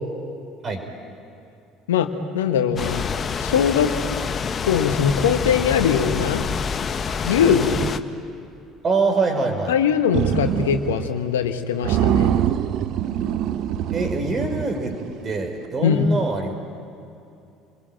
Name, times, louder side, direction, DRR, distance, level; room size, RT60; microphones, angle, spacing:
voice 1, 2.3-3.1 3.4-3.9 4.6-6.4 7.2-7.7 9.7-12.3 15.8-16.1, left 8 dB, 80° left, 7 dB, 1.3 m, -21 dB
sound 1, 2.8-8.0, left 6 dB, 35° left, 1.1 m, -27 dB
voice 2, 7.5-7.8 8.8-9.7 13.9-15.0 15.2-16.5, right 3 dB, 35° right, 4 dB, 5.3 m, -24 dB
sound 2, 10.1-11.1 11.4-11.5 11.8-15.2, right 10 dB, 55° right, 0.9 m, -24 dB
28.0 x 22.5 x 9.1 m, 2.6 s
figure-of-eight pair, 60°, 0 cm